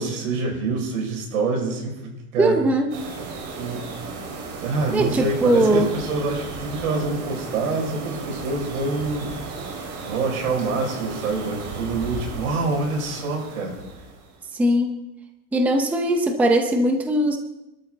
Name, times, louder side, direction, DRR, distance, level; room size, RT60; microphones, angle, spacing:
voice 1, 0.0-2.6 3.6-3.9 4.6-9.3 10.1-13.8, right 3 dB, 80° right, 1 dB, 6.4 m, -26 dB
voice 2, 2.4-2.9 4.9-5.9 14.5-14.9 15.5-17.4, right 1 dB, 5° right, 4 dB, 0.7 m, -20 dB
sound 1, 2.9-14.5, right 3 dB, 55° right, 5.7 m, -35 dB
26.5 x 13.0 x 4.1 m, 0.95 s
supercardioid pair, 160°, 42 cm